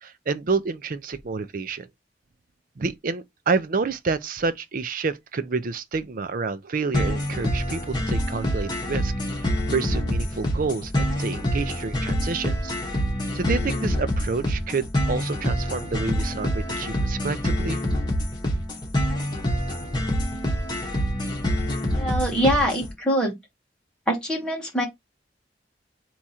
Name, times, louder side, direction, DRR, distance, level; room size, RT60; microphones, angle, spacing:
voice 1, 0.0-1.9 2.8-9.1 9.4-12.7 13.3-17.8, right 4 dB, 50° right, 0.5 m, -29 dB
sound 1, 6.9-22.9, equal, 25° left, 1.4 m, -26 dB
voice 2, 21.9-23.4 24.1-24.9, equal, 5° left, 1.6 m, -24 dB
3.6 x 2.9 x 4.2 m
head